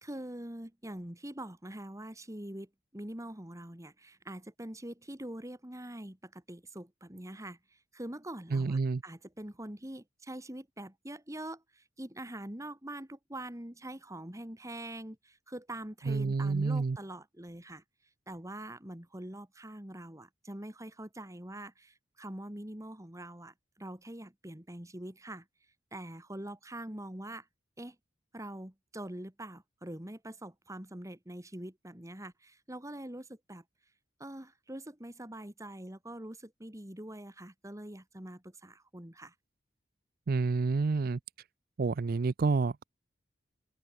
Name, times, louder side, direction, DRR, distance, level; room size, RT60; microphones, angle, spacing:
voice 1, 0.0-7.6 7.9-17.8 18.3-25.4 25.9-27.5 27.8-28.0 28.3-33.6 34.2-39.3, right 1 dB, 20° right, 2.4 m, -44 dB
voice 2, 8.5-9.0 16.1-17.0 40.3-41.2 41.8-42.8, right 4 dB, 55° right, 0.5 m, -29 dB
head